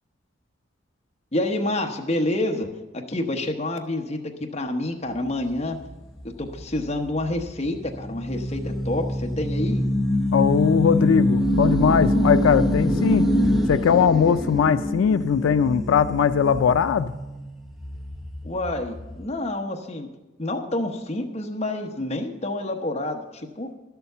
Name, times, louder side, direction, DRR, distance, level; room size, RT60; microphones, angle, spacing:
voice 1, 1.3-2.7 3.1-5.8 6.4-9.8 18.4-20.1 20.4-23.7, left 1 dB, 35° left, 2 dB, 1.0 m, -28 dB
sound 1, 5.1-19.3, left 1 dB, ahead, 0.7 m, -25 dB
voice 2, 10.3-13.3 13.7-17.1, left 7 dB, 90° left, 11 dB, 0.4 m, -20 dB
11.5 x 7.0 x 6.7 m, 1.1 s
head